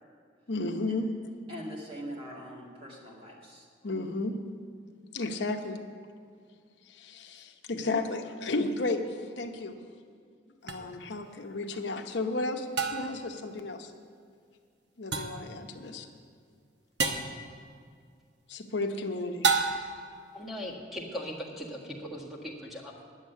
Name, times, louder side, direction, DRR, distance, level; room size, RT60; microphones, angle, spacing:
voice 1, 0.5-1.2 3.8-4.5 5.1-5.8 6.9-9.7 10.6-13.9 15.0-16.1 18.5-19.5, left 2 dB, 80° left, 4 dB, 0.9 m, -33 dB
voice 2, 1.5-3.7, right 1 dB, 30° right, -3 dB, 2.2 m, -42 dB
sound 1, 10.7-10.8 12.8-13.3 15.1-15.5 17.0-17.4 19.4-20.1, right 4 dB, 70° right, 1.0 m, -29 dB
voice 3, 20.3-23.0, equal, ahead, -2 dB, 1.6 m, -39 dB
10.5 x 7.3 x 9.3 m, 2.2 s
head